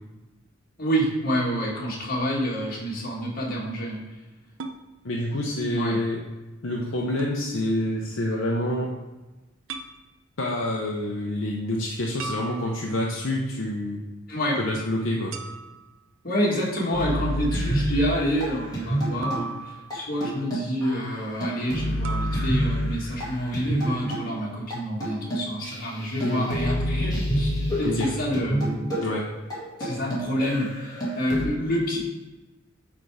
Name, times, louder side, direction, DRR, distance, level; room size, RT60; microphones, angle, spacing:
voice 1, 0.8-4.0 5.7-6.0 14.3-14.6 16.2-28.9 29.8-32.0, equal, 45° left, -4 dB, 1.9 m, -28 dB
sound 1, 4.6-4.8 7.2-7.4 9.7-10.0 12.2-13.1 15.3-15.9 19.2-20.1 22.0-22.4, right 4 dB, 75° right, 0.6 m, -36 dB
voice 2, 5.0-6.2 6.6-8.9 10.4-14.0 14.6-15.4 26.2-26.5 27.8-28.1 29.0-29.3, left 1 dB, 65° left, -2 dB, 0.8 m, -27 dB
sound 2, 16.9-19.5 19.9-20.0 20.2-24.3 24.7-24.8 25.0-31.4, equal, 20° left, 2.2 m, -28 dB
8.3 x 3.5 x 4.9 m, 1.1 s
head